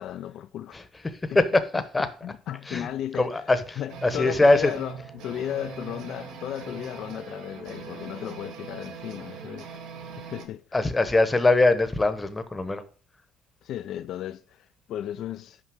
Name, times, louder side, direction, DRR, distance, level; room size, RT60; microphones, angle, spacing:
voice 1, 0.0-0.8 2.2-3.4 3.8-9.7 10.3-10.8 13.6-15.6, left 11 dB, 60° left, 0.3 m, -35 dB
voice 2, 0.7-2.1 2.7-2.9 3.1-4.7 10.7-12.8, left 2 dB, 15° left, 0.9 m, -22 dB
sound 1, 3.9-10.5, right 6 dB, 75° right, 1.3 m, -41 dB
6.0 x 5.3 x 6.3 m
cardioid pair, 110°, 0 cm